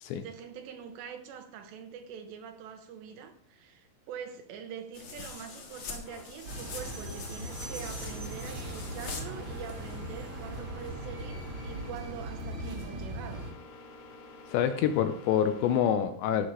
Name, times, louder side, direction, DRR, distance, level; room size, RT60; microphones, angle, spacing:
voice 1, 0.1-13.5, right 7 dB, 75° right, 2.8 m, -44 dB
sound 1, 4.9-10.0, left 4 dB, 55° left, 2.0 m, -43 dB
sound 2, 6.1-15.8, left 3 dB, 70° left, 4.4 m, -50 dB
sound 3, 6.4-13.5, right 1 dB, 50° right, 1.9 m, -39 dB
voice 2, 14.5-16.5, left 9 dB, 85° left, 2.5 m, -26 dB
14.0 x 5.8 x 4.9 m
omnidirectional pair, 5.6 m